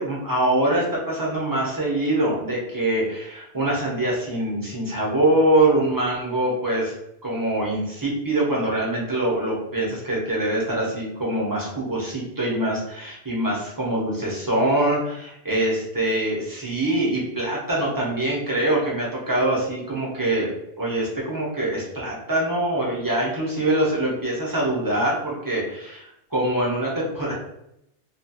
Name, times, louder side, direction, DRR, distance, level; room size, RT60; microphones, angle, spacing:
voice 1, 0.0-6.9 7.2-27.3, right 1 dB, 20° right, -4 dB, 0.7 m, -24 dB
2.8 x 2.4 x 2.7 m, 0.79 s
omnidirectional pair, 1.2 m